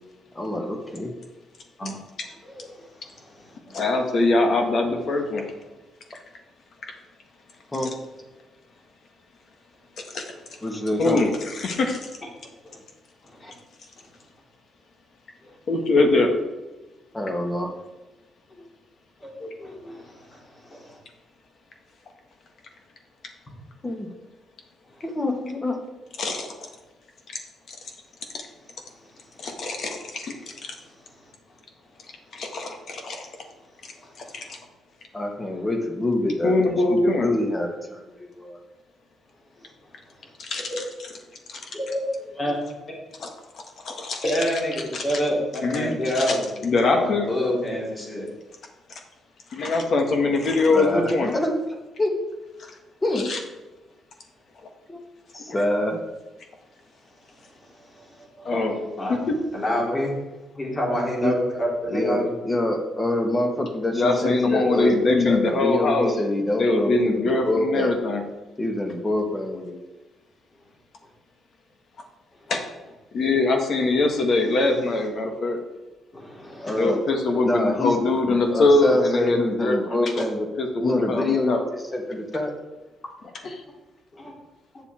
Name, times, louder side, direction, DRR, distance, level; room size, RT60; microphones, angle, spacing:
voice 1, 0.3-1.1 7.7-7.9 10.6-11.2 17.1-17.7 23.8-24.1 25.0-25.8 35.1-36.6 36.9-38.6 50.7-51.6 52.0-52.1 53.0-53.3 54.9-55.0 55.3-56.0 61.2-61.3 61.9-67.9 68.6-69.7 76.6-77.0 77.4-78.0 78.3-80.5 80.8-82.5, left 1 dB, 20° left, 3 dB, 1.7 m, -26 dB
voice 2, 3.7-5.4 10.1-10.3 11.0-12.0 15.7-16.3 26.2-26.7 27.7-27.8 29.4-30.3 30.6-30.8 32.3-33.3 34.2-34.6 36.4-37.3 40.4-40.8 41.5-41.6 43.2-43.3 43.8-44.2 44.9-45.2 45.6-46.4 46.6-47.3 49.5-51.3 53.2-53.4 58.4-58.7 59.3-59.4 63.9-66.1 66.6-68.2 72.5-72.6 73.1-75.6 76.7-80.3 80.6-81.6 83.4-83.6, left 2 dB, 55° left, 4 dB, 1.6 m, -23 dB
voice 3, 19.2-20.4 20.7-21.0 34.3-34.4 41.7-42.5 44.2-46.4 46.8-48.2 57.9-58.0 58.4-59.2 59.5-60.1 60.5-62.3 76.1-76.9 84.2-84.3, equal, 35° left, -3 dB, 3.4 m, -28 dB
8.5 x 6.9 x 4.4 m, 1.1 s
cardioid pair, 90°, 0 cm